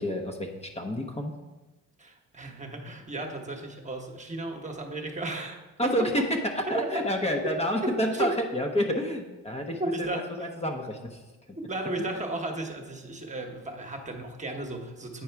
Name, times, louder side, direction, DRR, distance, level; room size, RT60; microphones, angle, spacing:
voice 1, 0.0-1.3 5.8-11.2 11.5-11.6, equal, 20° left, 2 dB, 0.9 m, -29 dB
voice 2, 2.0-5.6 5.8-6.1 6.7-6.9 7.8-8.3 9.8-10.5 11.7-15.2, right 2 dB, 25° right, 3 dB, 1.1 m, -34 dB
8.6 x 4.7 x 4.6 m, 1.2 s
cardioid pair, 90°, 30 cm